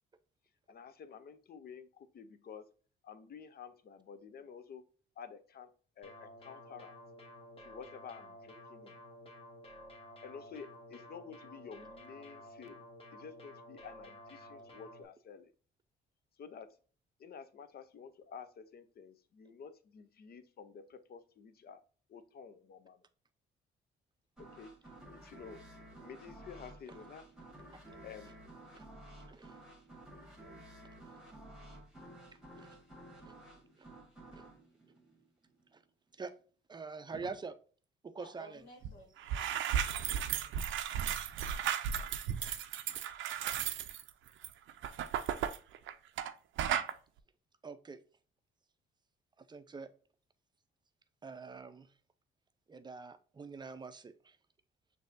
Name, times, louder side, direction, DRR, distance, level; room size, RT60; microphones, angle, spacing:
voice 1, 0.7-2.7 3.0-4.8 5.2-5.7 6.0-7.0 7.6-9.0 10.2-12.8 13.1-15.5 16.4-16.8 17.2-21.8 22.1-23.0 24.4-24.7 25.1-25.6 26.0-27.3 28.0-28.3, left 6 dB, 50° left, 0.6 m, -51 dB
sound 1, 6.0-15.0, left 1 dB, 30° left, 1.0 m, -53 dB
sound 2, 24.4-35.8, right 1 dB, 5° right, 1.5 m, -53 dB
voice 2, 36.7-37.5 38.0-38.6 40.1-40.5 47.6-48.0 49.4-49.9 51.2-51.9 52.7-54.4, right 4 dB, 20° right, 0.5 m, -45 dB
voice 3, 38.2-39.7, left 1 dB, 75° left, 1.7 m, -56 dB
sound 3, 38.8-38.9 39.2-46.3 46.6-46.9, right 9 dB, 75° right, 0.5 m, -35 dB
6.4 x 2.7 x 2.5 m
cardioid pair, 90°, 20 cm